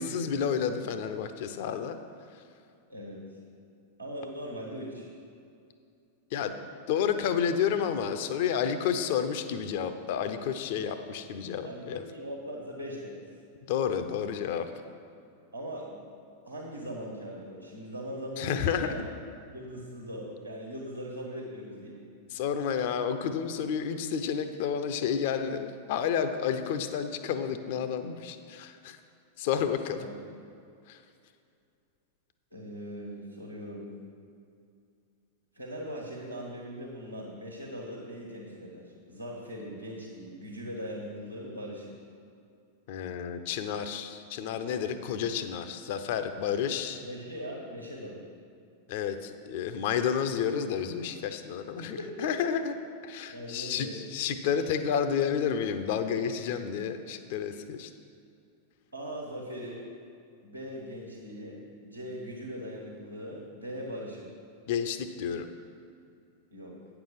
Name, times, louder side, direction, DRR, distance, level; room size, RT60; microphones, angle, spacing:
voice 1, 0.0-2.0 6.3-6.5 6.9-12.0 13.7-14.7 18.4-19.0 22.3-29.0 29.4-30.1 30.9-31.0 42.9-47.0 48.9-52.8 53.0-57.9 64.7-65.5, left 7 dB, 50° left, 9 dB, 0.6 m, -30 dB
voice 2, 2.9-3.2 4.0-5.1 11.6-13.2 15.5-16.0 16.4-19.1 19.5-22.0 30.0-30.2 32.5-33.9 35.5-41.9 46.7-48.2 51.8-52.3 53.3-54.0 58.9-59.9 60.4-64.3 66.5-66.7, equal, 85° right, -2 dB, 1.4 m, -40 dB
9.1 x 6.9 x 5.6 m, 2.5 s
figure-of-eight pair, 90°, 0 cm